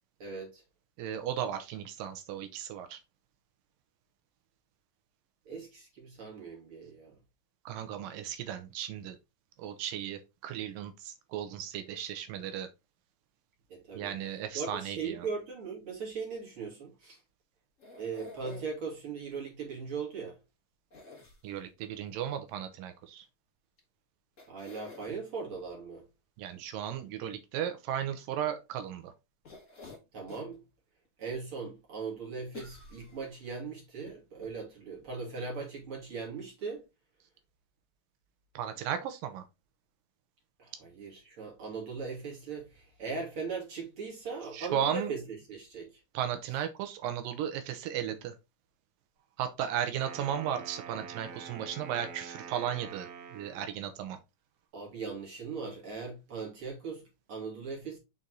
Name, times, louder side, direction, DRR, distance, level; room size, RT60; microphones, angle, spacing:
voice 1, 0.2-0.6 5.5-7.2 13.7-14.1 14.5-17.2 18.0-20.4 24.5-26.1 30.1-30.6 31.2-36.8 40.6-46.0 54.7-58.0, right 5 dB, 40° right, 3.0 m, -39 dB
voice 2, 1.0-3.0 7.7-9.2 9.6-12.7 13.9-15.3 21.4-23.3 26.4-29.1 38.6-39.4 44.5-45.1 46.1-48.4 49.4-54.2, right 9 dB, 85° right, 2.5 m, -35 dB
sound 1, 17.8-18.9 20.9-21.8 23.8-23.9 24.4-25.1 29.4-30.6 31.0-31.1 32.5-33.5 34.1-34.2 34.4-34.5, left 4 dB, 30° left, 1.5 m, -49 dB
Wind instrument woodwind instrument, 49.9-53.9, right 7 dB, 65° right, 2.6 m, -46 dB
6.3 x 4.1 x 3.8 m
omnidirectional pair, 3.9 m